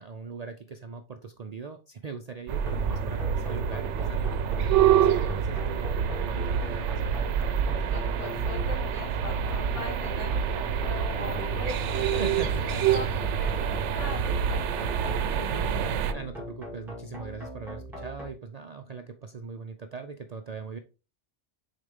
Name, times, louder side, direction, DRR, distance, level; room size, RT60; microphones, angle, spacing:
voice 1, 0.0-7.2 12.2-12.8 16.1-20.8, right 5 dB, 55° right, 7 dB, 0.4 m, -40 dB
sound 1, 2.5-16.1, right 8 dB, 80° right, 0.9 m, -27 dB
sound 2, 2.7-18.3, right 1 dB, ahead, 2.2 m, -39 dB
voice 2, 7.8-12.2 12.9-15.7, left 2 dB, 80° left, 0 dB, 2.5 m, -40 dB
6.5 x 4.1 x 3.6 m, 0.33 s
omnidirectional pair, 1.2 m